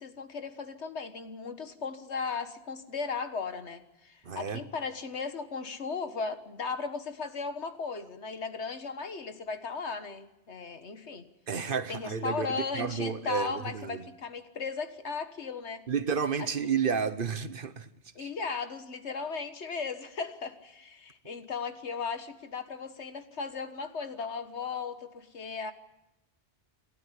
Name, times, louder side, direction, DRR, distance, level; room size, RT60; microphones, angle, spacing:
voice 1, 0.0-11.3 11.9-15.9 18.2-25.7, left 5 dB, 80° left, 1.7 m, -36 dB
voice 2, 4.2-4.6 11.5-14.0 15.9-17.9 18.2-18.3, right 6 dB, 55° right, 1.2 m, -31 dB
28.0 x 12.5 x 9.9 m
omnidirectional pair, 1.1 m